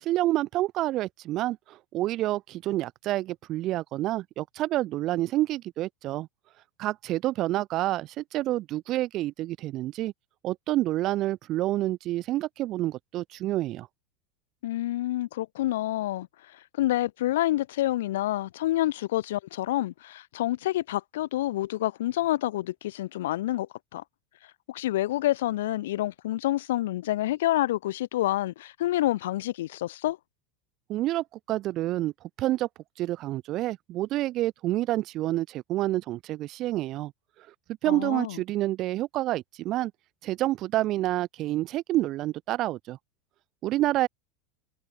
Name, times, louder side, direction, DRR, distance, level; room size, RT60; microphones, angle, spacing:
voice 1, 0.0-6.3 6.8-10.1 10.4-13.9 30.9-32.1 32.4-32.7 33.0-37.1 37.8-39.9 40.2-43.0 43.6-44.1, right 15 dB, 50° right, 2.6 m, -28 dB
voice 2, 14.6-16.3 16.8-24.0 24.7-30.2 37.9-38.4, left 15 dB, 75° left, 0.4 m, -28 dB
hypercardioid pair, 95°, 0 cm